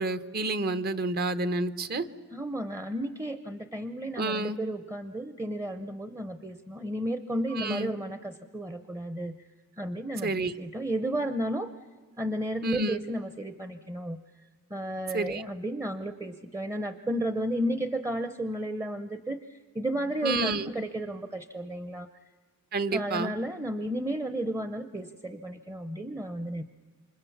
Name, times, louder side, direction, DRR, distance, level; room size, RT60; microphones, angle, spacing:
voice 1, 0.0-2.1 4.2-4.6 7.5-7.9 10.2-10.5 12.6-13.0 15.1-15.4 20.2-20.7 22.7-23.3, right 2 dB, 45° right, 13 dB, 1.0 m, -29 dB
voice 2, 2.3-9.4 9.8-11.7 12.2-14.2 14.7-22.1 22.9-26.6, right 1 dB, 15° right, 10 dB, 0.7 m, -33 dB
28.5 x 25.5 x 7.2 m, 1.5 s
head